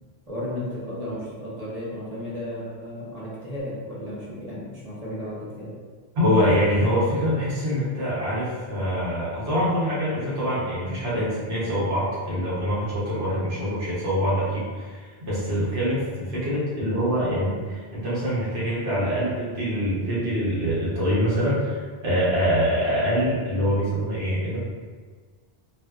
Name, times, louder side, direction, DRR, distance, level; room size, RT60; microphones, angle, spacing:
voice 1, 0.3-5.8, left 1 dB, 40° right, -8 dB, 0.7 m, -34 dB
voice 2, 6.1-24.6, equal, 80° right, -9 dB, 1.1 m, -24 dB
2.6 x 2.1 x 2.2 m, 1.5 s
omnidirectional pair, 1.1 m